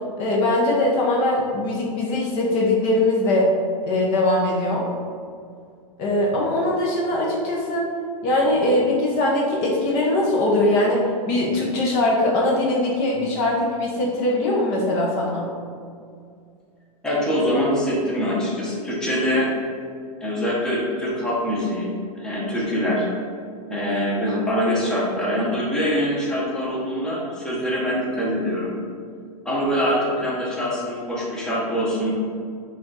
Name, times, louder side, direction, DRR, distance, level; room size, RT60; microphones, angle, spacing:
voice 1, 0.2-3.5 3.8-4.9 6.0-7.9 8.2-15.5, left 1 dB, 40° left, -3 dB, 0.7 m, -21 dB
voice 2, 17.0-19.5 20.2-23.1 23.7-28.7 29.4-32.1, equal, 5° left, -6 dB, 0.8 m, -24 dB
4.3 x 2.4 x 4.0 m, 2.2 s
hypercardioid pair, 135°, 20 cm